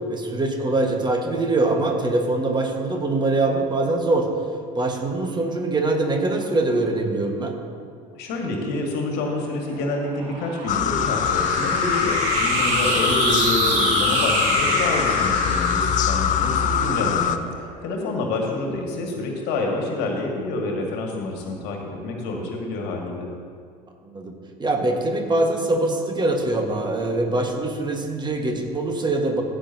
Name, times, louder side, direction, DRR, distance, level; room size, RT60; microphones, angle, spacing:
voice 1, 0.1-4.3 4.7-7.5 24.0-24.3 24.6-29.4, right 2 dB, 20° right, 3 dB, 1.6 m, -23 dB
voice 2, 8.1-23.3, left 2 dB, 55° left, 1 dB, 1.9 m, -27 dB
sound 1, 9.2-17.9, right 4 dB, 60° right, 1.8 m, -27 dB
sound 2, 10.7-17.4, left 9 dB, 35° left, 0.6 m, -23 dB
15.5 x 8.9 x 2.9 m, 2.1 s
figure-of-eight pair, 65°, 21 cm